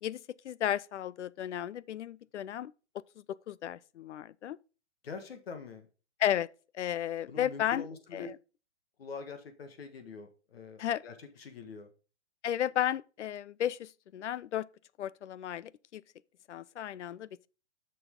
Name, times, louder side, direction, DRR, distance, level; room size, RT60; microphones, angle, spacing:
voice 1, 0.0-2.7 3.5-4.6 6.2-6.5 6.7-7.9 8.1-8.4 10.8-11.0 12.4-14.7 15.0-16.0 16.5-17.5, left 11 dB, 80° left, 0.5 m, -33 dB
voice 2, 5.0-5.9 7.3-8.3 9.0-11.9, left 4 dB, 55° left, 1.6 m, -44 dB
7.9 x 6.3 x 3.7 m
hypercardioid pair, 170°, 35 cm